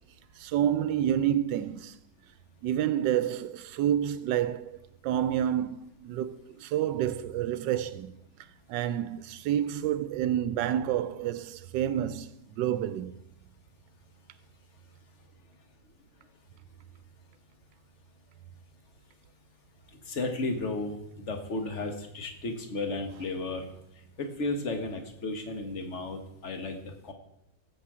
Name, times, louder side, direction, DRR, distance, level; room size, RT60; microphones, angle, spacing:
voice 1, 0.4-1.9 2.6-4.8 5.0-8.1 8.7-13.1, right 10 dB, 85° right, 1.3 m, -29 dB
voice 2, 20.0-23.7 24.2-27.1, left 2 dB, 45° left, 1.7 m, -34 dB
15.5 x 7.4 x 4.9 m
omnidirectional pair, 1.9 m